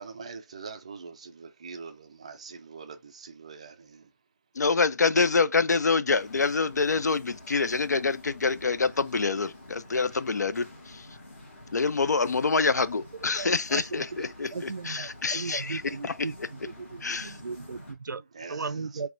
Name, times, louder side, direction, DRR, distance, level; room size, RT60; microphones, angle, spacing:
voice 1, 0.0-4.0 18.4-18.6, right 5 dB, 20° right, 0.4 m, -43 dB
voice 2, 4.6-11.1 11.7-16.1 17.0-17.4, left 4 dB, 60° left, 0.5 m, -26 dB
sound 1, 6.1-17.9, left 1 dB, 40° left, 1.9 m, -49 dB
voice 3, 13.4-14.0 14.5-18.2 18.5-19.1, right 4 dB, 85° right, 0.5 m, -37 dB
4.8 x 3.3 x 2.6 m
figure-of-eight pair, 170°, 10 cm